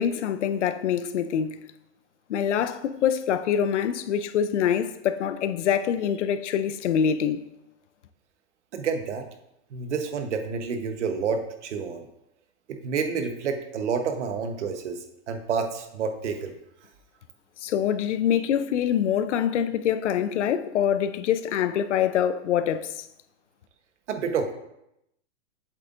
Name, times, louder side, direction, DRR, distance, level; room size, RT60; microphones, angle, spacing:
voice 1, 0.0-1.6 2.3-7.5 17.6-23.1, left 9 dB, 75° left, 0.6 m, -25 dB
voice 2, 8.7-9.2 9.7-12.0 12.7-15.0 15.3-16.5 24.1-24.5, right 5 dB, 75° right, 1.1 m, -29 dB
7.8 x 7.5 x 2.5 m
hypercardioid pair, 165°, 35 cm